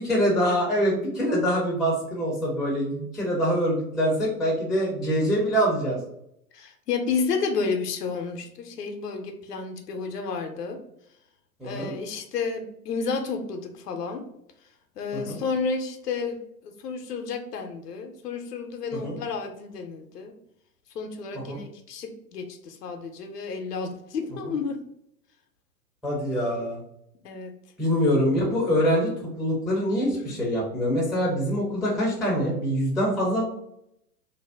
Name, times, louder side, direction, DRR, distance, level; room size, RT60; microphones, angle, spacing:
voice 1, 0.1-6.0 11.6-11.9 15.1-15.4 19.0-19.1 21.5-21.6 26.0-26.8 27.8-29.1 29.4-33.4, equal, ahead, -5 dB, 0.4 m, -24 dB
voice 2, 6.5-10.8 11.6-14.2 15.0-16.4 16.6-20.3 20.9-24.8 27.2-27.5 30.2-30.4, left 5 dB, 80° left, 5 dB, 0.6 m, -31 dB
2.6 x 2.1 x 3.3 m, 0.76 s
figure-of-eight pair, 100°, 47 cm